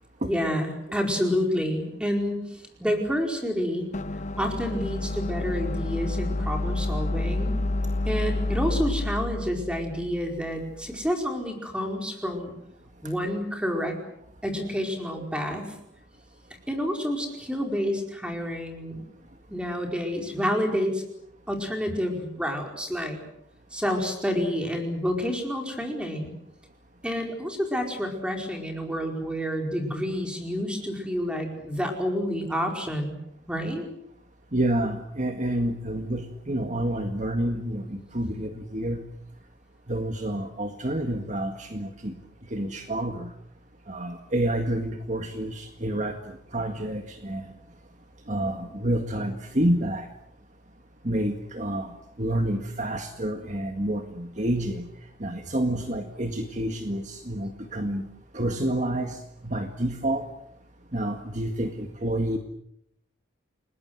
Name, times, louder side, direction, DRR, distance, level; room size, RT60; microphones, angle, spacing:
voice 1, 0.3-3.9 4.4-7.7 8.0-12.5 13.0-14.0 14.4-15.8 16.7-19.0 19.5-21.1 21.5-23.2 23.7-26.3 27.0-33.2 33.5-33.8, equal, 5° right, 3 dB, 4.7 m, -29 dB
sound 1, 3.9-11.0, left 2 dB, 35° left, 0.9 m, -29 dB
voice 2, 34.5-39.0 39.9-42.1 42.5-43.3 43.9-46.2 46.5-47.5 48.3-50.1 51.0-54.9 55.2-58.0 58.3-59.2 59.4-60.2 60.9-62.4, right 1 dB, 35° right, 5 dB, 1.8 m, -28 dB
30.0 x 21.0 x 7.8 m, 0.74 s
head